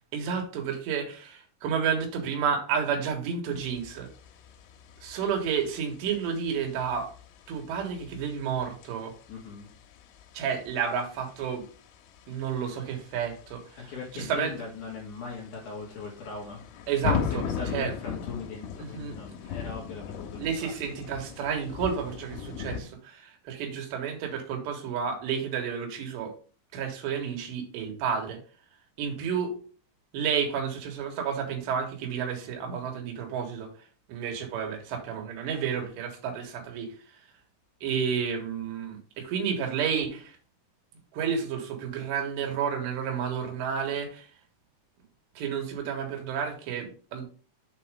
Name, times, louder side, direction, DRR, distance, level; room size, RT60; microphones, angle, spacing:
voice 1, 0.1-4.1 5.0-7.1 7.5-9.1 10.3-11.6 12.3-14.5 16.9-17.9 18.8-19.2 20.4-26.3 26.7-28.4 29.0-29.5 30.1-33.7 34.1-36.9 37.8-40.4 41.1-44.3 45.3-47.3, right 7 dB, 70° right, 2 dB, 3.5 m, -31 dB
sound 1, 3.5-22.8, left 8 dB, 90° left, 3.4 m, -39 dB
voice 2, 9.3-9.7 13.8-16.6 17.3-20.7, left 4 dB, 55° left, -3 dB, 2.4 m, -39 dB
7.4 x 4.1 x 4.9 m, 0.39 s
omnidirectional pair, 5.4 m